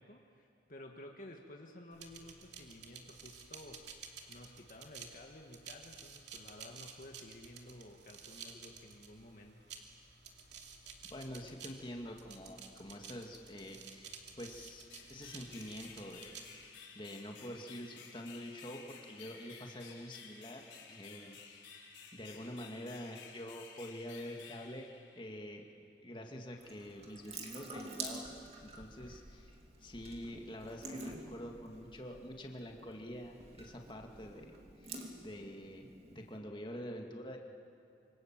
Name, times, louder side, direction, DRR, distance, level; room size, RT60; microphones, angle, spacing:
voice 1, 0.0-9.5, left 1 dB, 45° left, 2 dB, 1.6 m, -53 dB
sound 1, 1.9-16.7, right 6 dB, 70° right, 2.7 m, -53 dB
voice 2, 11.1-16.7 16.9-21.4 22.1-24.9 25.2-25.6 26.0-28.3 28.6-29.5 29.8-34.5 34.8-34.9 35.2-37.4, equal, 25° left, 2 dB, 2.1 m, -46 dB
sound 2, 14.9-25.6, left 5 dB, 80° left, 4.6 m, -54 dB
Water tap faucet / Sink (filling or washing) / Drip, 26.6-36.4, right 2 dB, 35° right, 2.7 m, -49 dB
26.5 x 25.0 x 7.5 m, 2.8 s
head